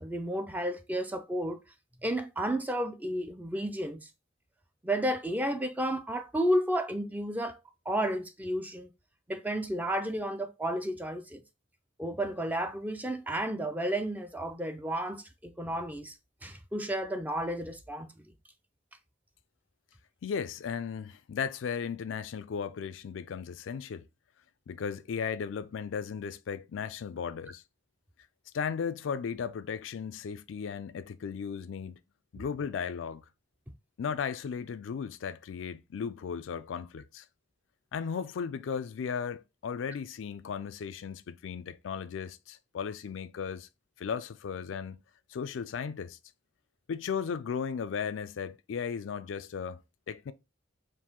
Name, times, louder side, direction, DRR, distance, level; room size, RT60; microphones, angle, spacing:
voice 1, 0.0-1.6 2.0-4.1 4.8-7.6 7.9-8.9 9.3-11.4 12.0-16.1 16.4-18.1, right 1 dB, 10° right, 0.4 m, -32 dB
voice 2, 20.2-24.1 24.7-27.6 28.5-32.0 32.3-33.2 34.0-37.2 37.9-43.7 44.0-45.0 45.3-46.2 46.9-50.3, left 6 dB, 90° left, 0.4 m, -36 dB
4.4 x 2.6 x 3.6 m
head